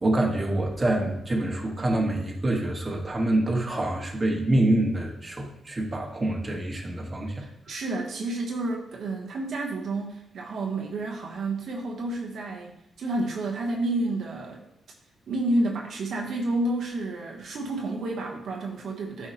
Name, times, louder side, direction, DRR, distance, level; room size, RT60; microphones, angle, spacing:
voice 1, 0.0-7.4, right 1 dB, 20° right, -1 dB, 1.5 m, -26 dB
voice 2, 7.4-14.6 15.3-19.3, right 2 dB, 65° right, 0 dB, 1.0 m, -30 dB
12.0 x 4.8 x 2.9 m, 0.81 s
cardioid pair, 130°, 0 cm